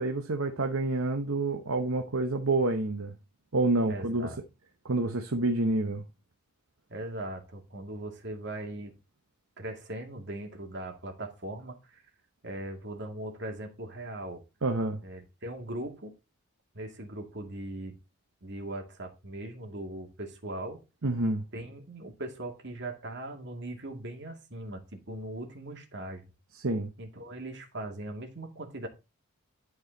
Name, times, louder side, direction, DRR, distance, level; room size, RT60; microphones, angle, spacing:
voice 1, 0.0-3.1 3.5-4.3 4.8-6.0 14.6-15.0 21.0-21.4 26.5-26.9, right 2 dB, 65° right, 0.9 m, -28 dB
voice 2, 3.9-4.4 6.9-8.9 9.6-12.0 12.4-14.4 15.0-16.1 16.7-18.0 18.4-20.8 21.5-26.2 27.0-28.9, right 1 dB, 50° right, 2.3 m, -39 dB
11.5 x 4.8 x 4.0 m
head